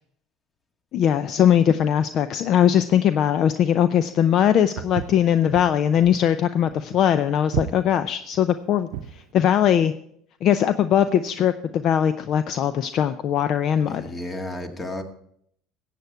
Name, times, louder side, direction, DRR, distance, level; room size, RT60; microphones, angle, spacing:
voice 1, 0.9-9.9 10.4-14.0, left 9 dB, 55° left, 12 dB, 0.5 m, -20 dB
Walk footsteps, 4.8-9.2, right 12 dB, 75° right, 0.7 m, -33 dB
voice 2, 13.7-15.0, left 1 dB, 25° left, 5 dB, 1.9 m, -33 dB
14.5 x 8.4 x 4.6 m, 0.69 s
hypercardioid pair, 80°, 0 cm